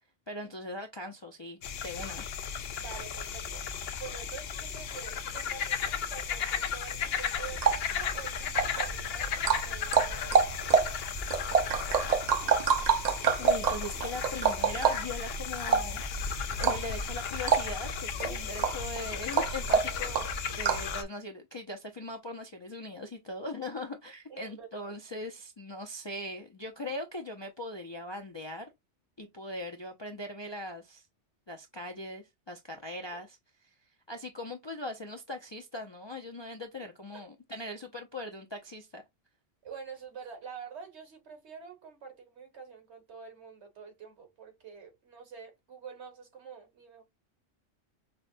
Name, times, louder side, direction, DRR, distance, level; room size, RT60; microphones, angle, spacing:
voice 1, 0.3-1.6 1.8-2.2 13.4-16.0 16.6-28.7 29.2-31.1 31.5-33.4 33.6-33.7 34.1-39.0, left 2 dB, 40° left, 0.4 m, -40 dB
sound 1, 1.6-21.0, left 7 dB, 65° left, 0.8 m, -35 dB
voice 2, 2.7-3.6 4.0-10.5 18.2-18.6 24.3-24.9 33.0-33.2 39.6-47.0, right 6 dB, 70° right, 1.6 m, -47 dB
sound 2, 7.4-21.0, right 6 dB, 50° right, 0.5 m, -28 dB
5.5 x 2.1 x 2.5 m
omnidirectional pair, 1.2 m